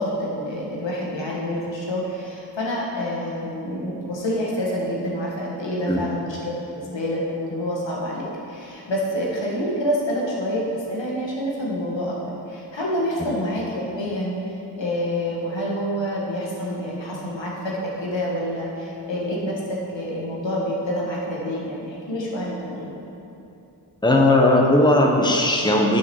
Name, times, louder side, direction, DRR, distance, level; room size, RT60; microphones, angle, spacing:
voice 1, 0.0-10.6 10.9-14.3 14.8-22.9, equal, 80° left, -4 dB, 1.8 m, -27 dB
voice 2, 24.0-26.0, left 1 dB, 10° left, 0 dB, 1.2 m, -17 dB
9.4 x 5.0 x 6.3 m, 2.8 s
cardioid pair, 40°, 44 cm